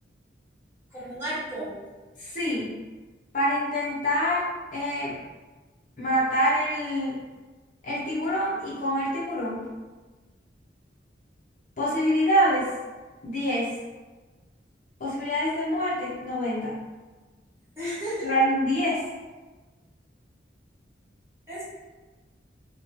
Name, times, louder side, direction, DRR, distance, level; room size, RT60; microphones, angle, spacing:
voice 1, 0.9-1.8 17.8-18.3 21.5-21.7, equal, 15° right, -12 dB, 1.0 m, -33 dB
voice 2, 2.2-2.8 3.3-5.2 6.0-7.2 7.8-9.7 11.8-12.7 13.2-13.7 15.0-16.7 18.2-19.0, equal, 45° left, -7 dB, 0.5 m, -26 dB
2.9 x 2.1 x 2.6 m, 1.3 s
head